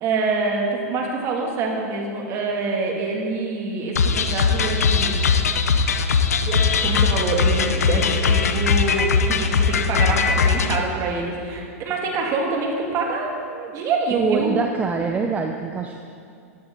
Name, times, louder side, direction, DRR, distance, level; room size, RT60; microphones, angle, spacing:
voice 1, 0.0-5.2 6.5-14.6, right 3 dB, 40° right, 0 dB, 2.5 m, -26 dB
sound 1, 3.9-10.8, left 5 dB, 85° left, 0.8 m, -20 dB
Guitar, 7.7-11.6, left 3 dB, 10° left, 2.0 m, -42 dB
voice 2, 14.1-16.0, right 4 dB, 20° right, 3 dB, 0.7 m, -24 dB
13.5 x 11.5 x 3.9 m, 2.4 s
hypercardioid pair, 115°, 8 cm